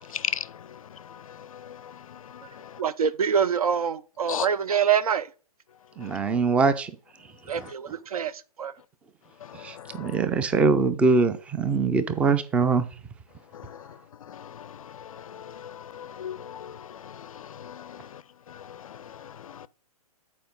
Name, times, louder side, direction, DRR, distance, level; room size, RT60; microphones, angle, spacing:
voice 1, 0.1-2.8 4.3-4.5 6.0-6.2 7.6-7.7 9.4-10.2 13.5-13.9 14.2-18.2 18.5-19.7, left 9 dB, 60° left, 0.4 m, -38 dB
voice 2, 2.8-5.3 7.5-8.3 8.6-8.7, right 7 dB, 65° right, 0.6 m, -25 dB
voice 3, 6.0-6.9 7.5-7.7 9.5-12.9, right 4 dB, 5° right, 0.4 m, -23 dB
8.4 x 4.6 x 3.8 m
figure-of-eight pair, 125°, 20 cm